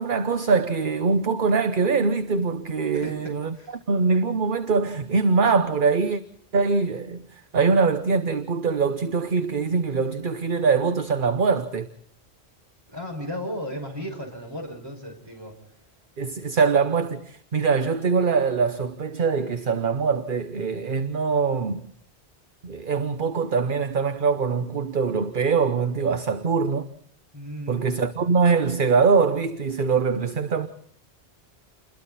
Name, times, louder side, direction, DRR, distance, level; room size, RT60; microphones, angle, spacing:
voice 1, 0.0-3.6 3.9-6.2 6.5-11.9 16.2-21.9 22.6-26.9 27.7-30.7, right 5 dB, 50° right, 1.1 m, -23 dB
voice 2, 2.9-3.8 12.9-15.6 27.3-27.9, equal, 20° right, 5.9 m, -35 dB
28.5 x 21.5 x 4.2 m
omnidirectional pair, 1.1 m